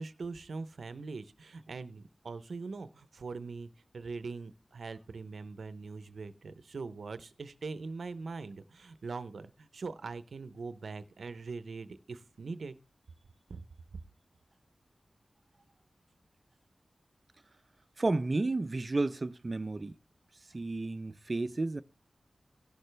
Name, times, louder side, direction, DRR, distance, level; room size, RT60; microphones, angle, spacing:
voice 1, 0.0-12.8 13.5-13.6, right 4 dB, 85° right, 0.6 m, -42 dB
voice 2, 18.0-20.0 20.5-21.8, right 2 dB, 45° right, 0.5 m, -32 dB
17.0 x 6.7 x 3.3 m
wide cardioid pair, 55°, 0 cm